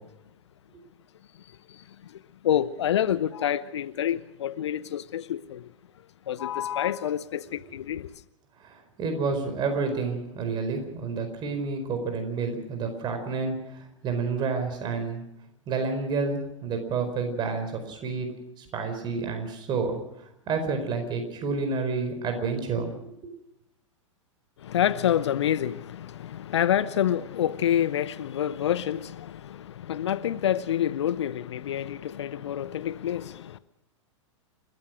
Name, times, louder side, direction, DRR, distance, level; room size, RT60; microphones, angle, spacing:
voice 1, 2.4-5.7 6.3-8.1 24.6-33.6, left 10 dB, 60° left, 0.8 m, -27 dB
voice 2, 8.6-15.2 15.7-18.3 18.6-20.0 20.5-22.9 23.2-23.3, right 4 dB, 30° right, 4.6 m, -29 dB
29.5 x 14.0 x 6.3 m
figure-of-eight pair, 100°, 16 cm